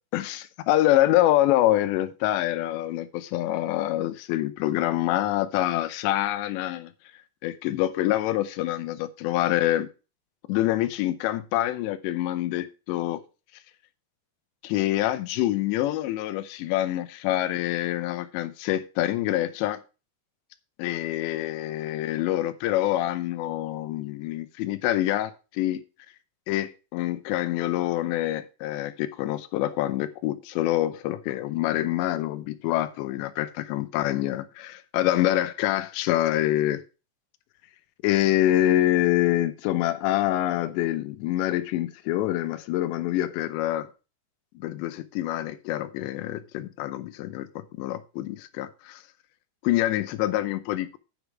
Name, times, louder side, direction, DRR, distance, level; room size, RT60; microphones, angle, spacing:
voice 1, 0.1-6.9 7.4-9.9 10.5-13.2 14.6-19.8 20.8-25.8 26.5-36.8 38.0-43.9 44.6-49.0 49.6-51.0, left 14 dB, 85° left, 2.9 m, -26 dB
9.1 x 5.2 x 5.9 m
omnidirectional pair, 5.1 m